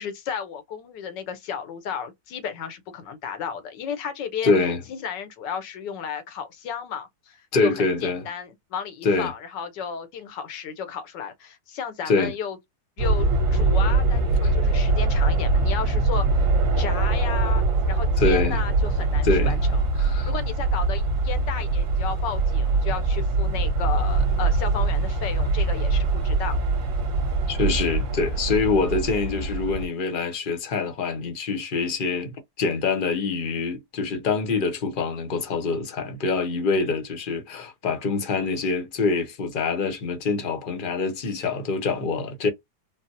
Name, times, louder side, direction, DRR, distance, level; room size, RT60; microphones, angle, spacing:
voice 1, 0.0-4.5 4.9-12.6 13.0-16.5 16.8-19.8 20.3-26.6, left 7 dB, 85° left, 1.5 m, -33 dB
voice 2, 4.4-4.8 7.5-8.2 9.0-9.3 12.1-12.3 14.4-14.5 18.2-18.6 19.2-19.5 20.0-20.3 27.5-42.5, left 4 dB, 50° left, 0.6 m, -25 dB
sound 1, 13.0-29.9, right 3 dB, 55° right, 1.1 m, -23 dB
4.0 x 2.0 x 2.6 m
omnidirectional pair, 1.8 m